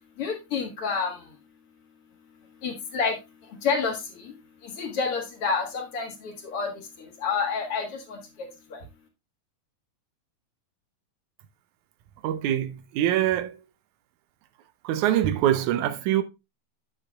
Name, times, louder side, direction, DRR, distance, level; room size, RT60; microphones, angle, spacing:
voice 1, 0.2-1.3 2.6-4.3 4.6-8.8, left 5 dB, 50° left, 2.0 m, -30 dB
voice 2, 12.2-13.6 14.8-16.2, right 12 dB, 75° right, 1.9 m, -24 dB
8.6 x 8.4 x 2.3 m
omnidirectional pair, 4.1 m